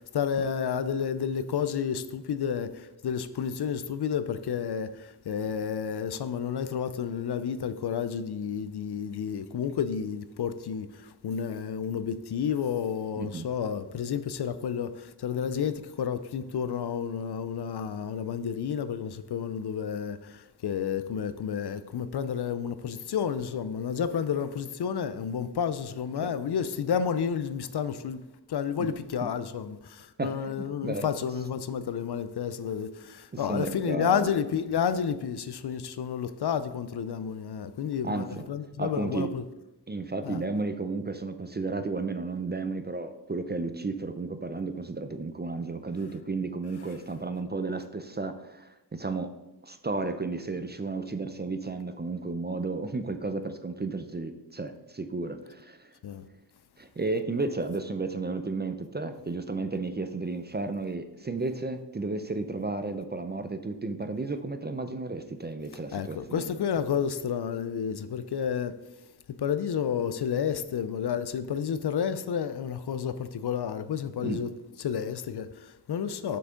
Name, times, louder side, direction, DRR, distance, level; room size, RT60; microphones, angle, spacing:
voice 1, 0.0-28.2 28.5-39.4 40.2-40.4 56.0-56.3 65.9-68.8 69.3-74.5 74.8-76.4, left 7 dB, 65° left, 0.5 m, -31 dB
voice 2, 13.2-13.5 26.2-26.3 28.8-28.9 30.2-31.1 33.3-34.3 38.0-38.5 38.8-39.3 39.9-49.3 49.6-55.9 56.8-66.5 74.2-74.4, right 3 dB, 25° right, 0.4 m, -33 dB
6.3 x 5.8 x 3.7 m
wide cardioid pair, 90°, 42 cm